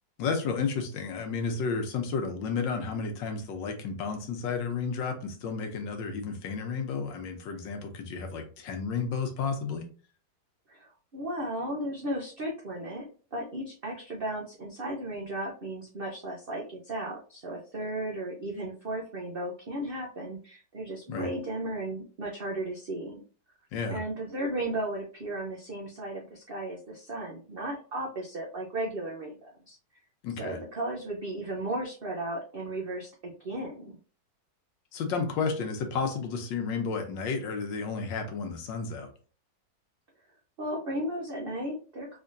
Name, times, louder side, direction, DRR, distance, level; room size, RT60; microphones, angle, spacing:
voice 1, 0.2-9.9 21.1-21.3 23.7-24.0 30.2-30.6 34.9-39.1, left 5 dB, 80° left, 5 dB, 1.5 m, -32 dB
voice 2, 10.7-13.0 13.3-23.2 23.9-29.8 30.4-34.0 40.6-42.2, right 1 dB, 65° right, -2 dB, 0.5 m, -35 dB
3.7 x 3.3 x 2.6 m, 0.39 s
omnidirectional pair, 2.0 m